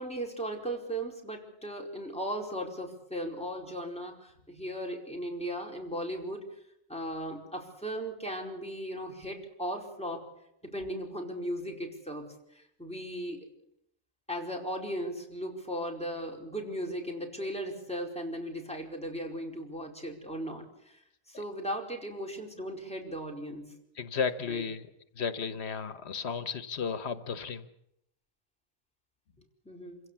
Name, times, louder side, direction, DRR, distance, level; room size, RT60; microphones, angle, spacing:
voice 1, 0.0-6.4 6.9-10.2 10.6-13.5 14.3-21.0 21.3-23.8 24.5-24.6 29.6-30.0, equal, 5° left, 0 dB, 4.8 m, -37 dB
voice 2, 24.0-24.9 25.1-27.7, left 6 dB, 85° left, 12 dB, 1.4 m, -33 dB
27.0 x 16.5 x 8.3 m, 0.78 s
omnidirectional pair, 1.1 m